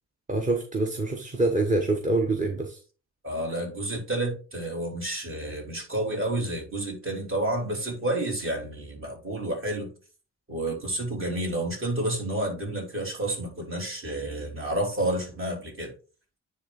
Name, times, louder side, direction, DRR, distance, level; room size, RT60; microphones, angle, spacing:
voice 1, 0.3-2.8, right 2 dB, 25° right, 3 dB, 1.1 m, -25 dB
voice 2, 3.2-9.9 10.5-15.9, right 1 dB, 45° right, 0 dB, 3.5 m, -30 dB
9.8 x 3.5 x 4.0 m, 0.36 s
cardioid pair, 90°, 30 cm